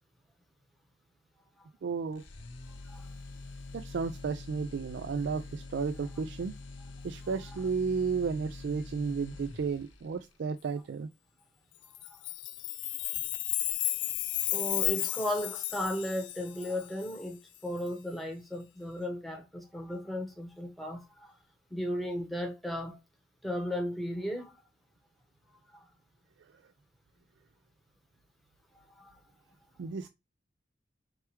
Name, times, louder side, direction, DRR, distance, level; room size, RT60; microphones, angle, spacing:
voice 1, 1.8-2.2 3.7-6.6 7.0-11.1 29.8-30.1, right 5 dB, 65° right, 0.3 m, -33 dB
sound 1, 2.2-10.1, left 3 dB, 85° left, 0.8 m, -46 dB
Chime, 11.9-17.1, left 17 dB, 70° left, 0.4 m, -33 dB
voice 2, 14.5-21.3 21.7-23.0 23.4-24.6 29.0-29.1, left 1 dB, ahead, 0.9 m, -35 dB
4.6 x 3.3 x 3.1 m
head